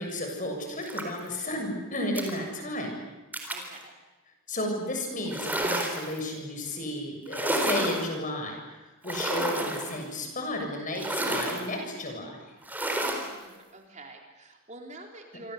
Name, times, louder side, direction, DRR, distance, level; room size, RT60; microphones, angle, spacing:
voice 1, 0.0-3.0 4.5-12.5, left 1 dB, 35° left, 3 dB, 7.1 m, -33 dB
sound 1, 0.8-1.3 2.2-2.4 3.3-3.7 5.3-6.2 7.3-8.1 9.0-10.0 11.0-11.7 12.6-13.3, right 1 dB, 10° right, 4.0 m, -30 dB
voice 2, 3.5-3.9 13.2-15.5, right 2 dB, 35° right, 2 dB, 3.9 m, -47 dB
27.5 x 25.5 x 8.2 m, 1.2 s
head